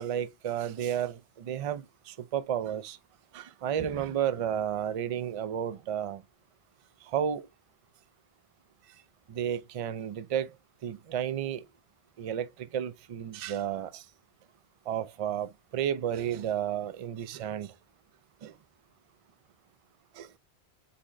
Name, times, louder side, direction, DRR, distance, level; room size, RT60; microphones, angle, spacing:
voice 1, 0.0-3.0 3.3-6.2 7.0-7.5 9.3-10.5 10.8-11.6 12.2-14.0 14.9-17.7 18.4-18.5 20.2-20.4, right 9 dB, 60° right, 0.3 m, -32 dB
4.2 x 3.7 x 3.1 m
omnidirectional pair, 1.2 m